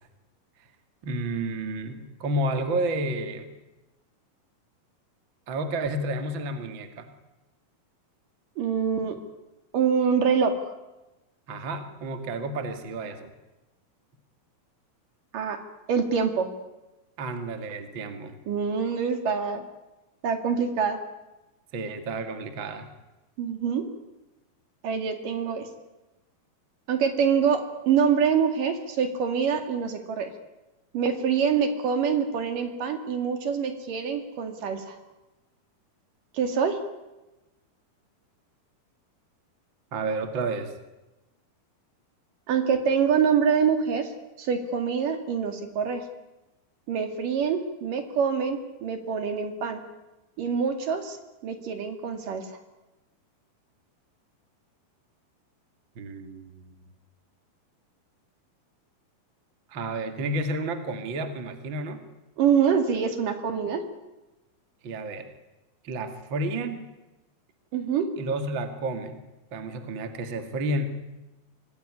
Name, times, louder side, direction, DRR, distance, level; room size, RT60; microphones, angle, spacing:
voice 1, 1.0-3.5 5.5-7.1 11.5-13.3 17.2-18.4 21.7-22.9 39.9-40.7 56.0-56.6 59.7-62.0 64.8-65.3 65.8-66.8 68.2-69.2 69.5-70.9, right 2 dB, 40° right, 7 dB, 2.3 m, -31 dB
voice 2, 8.6-9.2 9.7-10.5 15.3-15.6 15.9-16.5 18.5-19.6 20.2-21.0 23.4-23.8 24.8-25.7 26.9-30.3 30.9-35.0 36.3-36.8 42.5-44.1 44.4-46.0 46.9-49.8 50.4-51.2 51.4-52.5 62.4-63.8 67.7-68.1, right 6 dB, 60° right, 7 dB, 3.7 m, -25 dB
26.0 x 19.0 x 9.8 m, 1.0 s
omnidirectional pair, 4.4 m